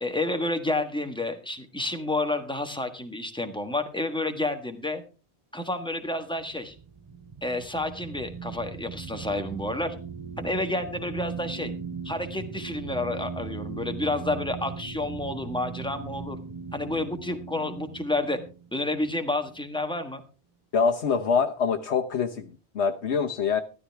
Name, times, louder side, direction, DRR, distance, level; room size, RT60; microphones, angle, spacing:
voice 1, 0.0-5.0 5.5-6.7 7.4-9.9 10.4-11.7 12.0-16.4 16.7-18.4 18.7-20.2, left 2 dB, 5° left, 5 dB, 1.4 m, -30 dB
sound 1, 6.1-19.8, right 5 dB, 30° right, 0.4 m, -39 dB
voice 2, 20.7-23.6, left 6 dB, 80° left, 4 dB, 1.2 m, -25 dB
13.0 x 12.0 x 3.5 m, 0.34 s
omnidirectional pair, 1.1 m